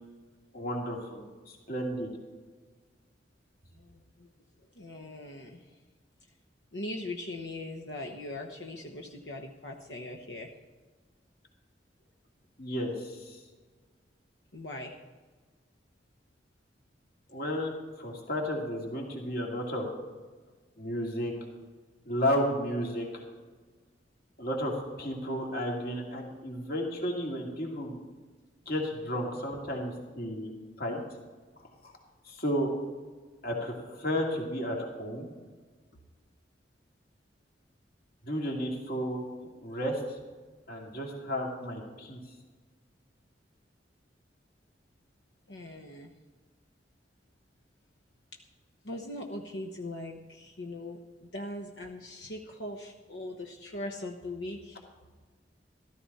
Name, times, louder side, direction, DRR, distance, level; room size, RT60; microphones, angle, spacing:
voice 1, 0.5-2.1 12.6-13.4 17.3-19.9 20.8-21.3 22.1-23.2 24.4-28.0 28.7-30.5 30.8-31.0 31.8-31.9 32.2-32.7 33.4-35.3 38.3-39.2 39.6-40.2 40.7-42.2, equal, 55° left, -1 dB, 2.5 m, -33 dB
voice 2, 3.7-4.3 4.7-5.8 6.7-10.5 14.5-15.0 45.5-46.1 48.8-54.8, left 1 dB, 80° left, 2 dB, 1.1 m, -40 dB
14.0 x 14.0 x 4.2 m, 1.4 s
head